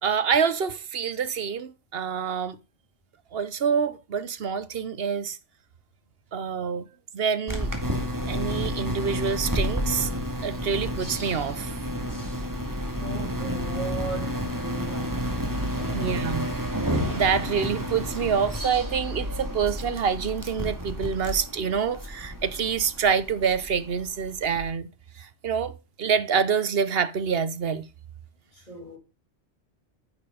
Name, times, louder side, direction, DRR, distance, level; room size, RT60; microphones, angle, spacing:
voice 1, 0.0-2.6 3.3-5.4 6.3-6.9 7.1-7.7 8.3-10.1 10.4-11.7 15.9-16.5 16.8-24.9 25.2-25.7 26.0-27.9, right 6 dB, 60° right, 1.0 m, -26 dB
sound 1, 7.5-24.7, equal, 15° right, 2.0 m, -30 dB
voice 2, 13.0-16.2 28.5-29.0, right 2 dB, 40° left, 3.5 m, -38 dB
9.6 x 6.7 x 5.0 m
omnidirectional pair, 1.2 m